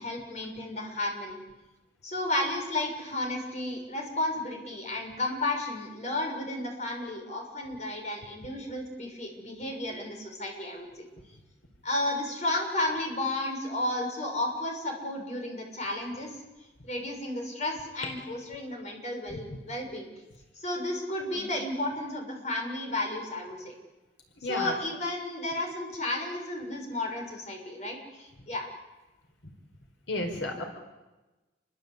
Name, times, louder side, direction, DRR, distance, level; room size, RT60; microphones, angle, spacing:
voice 1, 0.0-1.4 2.0-11.1 11.8-16.4 16.8-20.1 20.6-23.7 24.5-28.7, left 1 dB, 35° left, 2 dB, 6.6 m, -33 dB
voice 2, 24.4-24.7 30.1-30.6, left 2 dB, 85° left, 4 dB, 4.6 m, -32 dB
29.0 x 24.0 x 8.5 m, 1.1 s
head